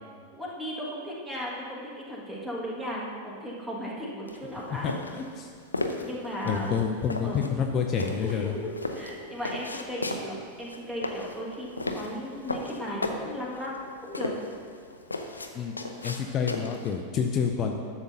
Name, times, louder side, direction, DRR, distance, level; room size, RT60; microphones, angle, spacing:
voice 1, 0.4-4.9 6.0-6.9 7.2-7.5 8.2-14.3, equal, 10° right, -5 dB, 1.7 m, -36 dB
sound 1, 4.3-17.0, left 2 dB, 80° left, 0.5 m, -35 dB
voice 2, 4.8-5.5 6.4-8.5 15.5-15.7 16.0-17.7, left 7 dB, 30° left, 3 dB, 0.5 m, -28 dB
11.5 x 7.0 x 2.7 m, 2.1 s
figure-of-eight pair, 90°, 0 cm